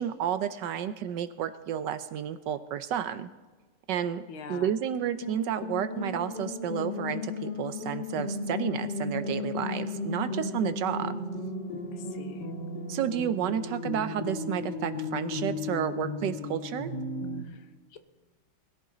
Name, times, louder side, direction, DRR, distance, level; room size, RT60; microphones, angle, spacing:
voice 1, 0.0-3.3 3.9-11.2 12.9-16.9, right 9 dB, 70° right, 12 dB, 1.2 m, -31 dB
voice 2, 4.3-4.7 11.9-12.5 17.4-18.0, left 7 dB, 80° left, 9 dB, 1.8 m, -44 dB
sound 1, 5.2-17.4, left 3 dB, 60° left, 2.0 m, -35 dB
21.0 x 13.5 x 3.9 m, 1.3 s
omnidirectional pair, 2.2 m